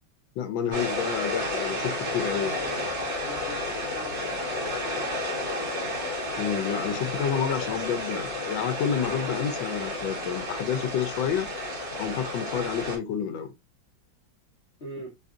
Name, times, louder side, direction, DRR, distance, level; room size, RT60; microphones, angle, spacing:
voice 1, 0.4-2.5 6.4-11.5 12.0-13.5, left 8 dB, 80° left, 1.5 m, -29 dB
sound 1, 0.7-13.0, left 1 dB, 65° right, 2.5 m, -31 dB
voice 2, 2.4-5.4 7.6-8.0 14.8-15.1, left 1 dB, 40° left, 1.4 m, -43 dB
4.7 x 2.6 x 2.5 m
omnidirectional pair, 2.1 m